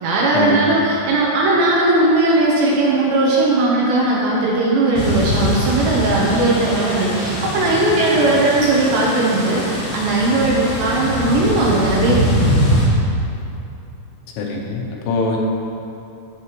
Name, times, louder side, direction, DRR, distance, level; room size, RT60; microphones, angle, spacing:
voice 1, 0.0-12.3, right 2 dB, 75° right, -5 dB, 2.7 m, -17 dB
sound 1, 4.9-12.9, equal, 60° left, 2.3 m, -22 dB
voice 2, 14.4-15.4, left 3 dB, 80° left, -1 dB, 3.4 m, -23 dB
9.8 x 8.3 x 3.0 m, 2.7 s
omnidirectional pair, 5.8 m